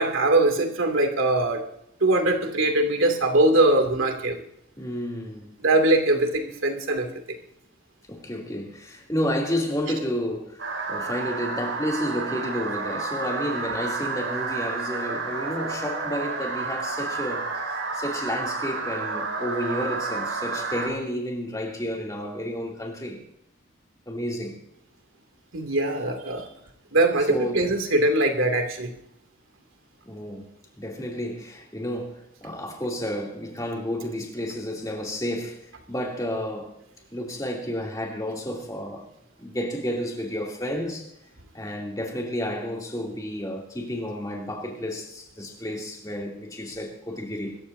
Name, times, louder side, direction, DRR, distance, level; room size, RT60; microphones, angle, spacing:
voice 1, 0.0-1.6 2.0-4.4 5.6-7.1 25.5-26.4 26.9-28.9, right 2 dB, 85° right, 2.7 m, -21 dB
voice 2, 4.8-5.5 8.1-23.2 24.1-24.6 27.3-27.7 30.0-30.5 30.8-35.6 35.9-36.8 37.1-39.1 39.4-41.1 41.5-47.6, equal, 15° left, 2.9 m, -31 dB
sound 1, 10.6-20.9, right 4 dB, 70° right, 4.2 m, -30 dB
25.0 x 14.0 x 2.7 m
head